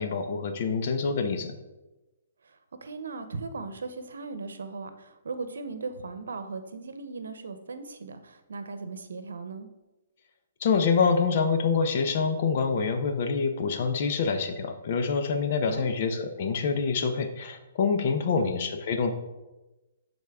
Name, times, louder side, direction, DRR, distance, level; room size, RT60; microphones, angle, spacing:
voice 1, 0.0-1.6 10.6-19.1, left 5 dB, 50° left, 6 dB, 0.9 m, -26 dB
voice 2, 2.4-9.7 15.6-15.9 18.2-18.5, right 4 dB, 85° right, 9 dB, 0.8 m, -38 dB
11.5 x 4.1 x 3.6 m, 1.0 s
hypercardioid pair, 150°, 0 cm